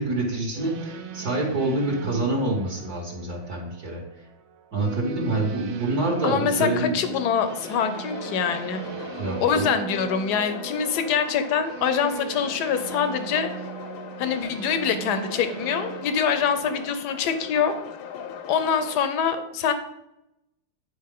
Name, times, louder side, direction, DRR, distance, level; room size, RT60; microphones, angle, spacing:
voice 1, 0.0-4.0 4.7-6.9 9.2-9.7, right 2 dB, 55° right, -4 dB, 1.7 m, -26 dB
sound 1, 0.5-18.6, right 8 dB, 85° right, 1.5 m, -39 dB
voice 2, 6.2-8.8 9.4-13.5 14.2-17.7 18.5-19.7, left 7 dB, 65° left, 9 dB, 1.2 m, -24 dB
sound 2, 7.0-19.1, left 8 dB, 85° left, 1.5 m, -40 dB
9.6 x 4.6 x 3.7 m, 0.89 s
omnidirectional pair, 2.1 m